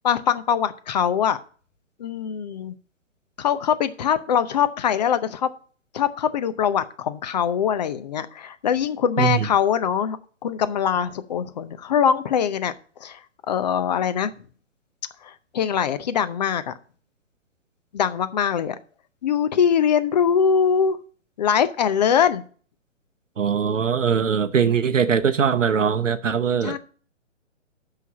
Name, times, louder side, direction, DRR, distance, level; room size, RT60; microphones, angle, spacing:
voice 1, 0.0-1.4 2.0-2.7 3.4-5.5 5.9-10.2 10.4-12.7 13.0-13.2 13.5-14.3 15.2-16.7 17.9-18.8 19.2-21.0 21.4-22.4 26.6-26.8, left 8 dB, 35° left, 0.7 m, -22 dB
voice 2, 23.4-26.8, right 7 dB, 80° right, 0.7 m, -21 dB
8.2 x 5.9 x 6.1 m
figure-of-eight pair, 130°, 37 cm